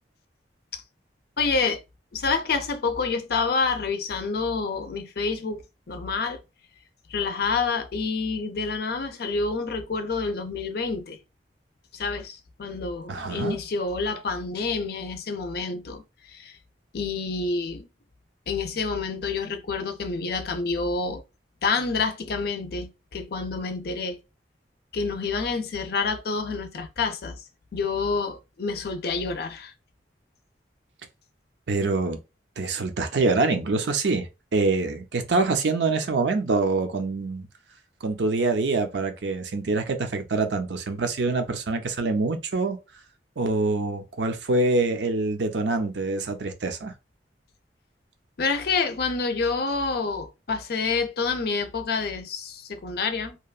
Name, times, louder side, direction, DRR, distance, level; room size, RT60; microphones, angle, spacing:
voice 1, 1.4-1.8 2.1-6.4 7.1-11.2 11.9-16.6 16.9-17.9 18.5-21.2 21.6-24.2 24.9-27.4 27.7-29.7 48.4-53.4, left 4 dB, 60° left, 0.5 m, -28 dB
voice 2, 13.1-13.6 31.7-32.2 32.6-34.3 34.5-37.5 38.0-42.8 43.4-46.9, right 3 dB, 80° right, 0.6 m, -25 dB
2.9 x 2.2 x 2.4 m
head